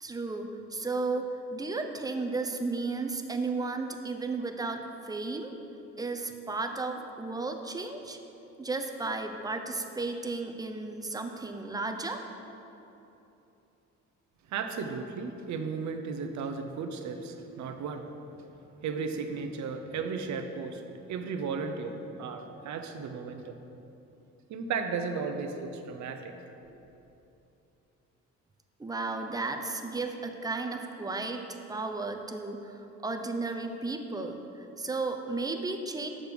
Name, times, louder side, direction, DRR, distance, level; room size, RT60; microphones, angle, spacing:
voice 1, 0.0-5.5 6.0-8.2 8.6-12.2 28.8-36.1, right 3 dB, 10° right, 5 dB, 0.6 m, -34 dB
voice 2, 14.5-18.1 18.8-20.8 21.1-23.6 24.5-26.4 26.7-26.8, right 5 dB, 70° right, 6 dB, 0.7 m, -35 dB
6.5 x 6.2 x 5.2 m, 3.0 s
cardioid pair, 90°, 30 cm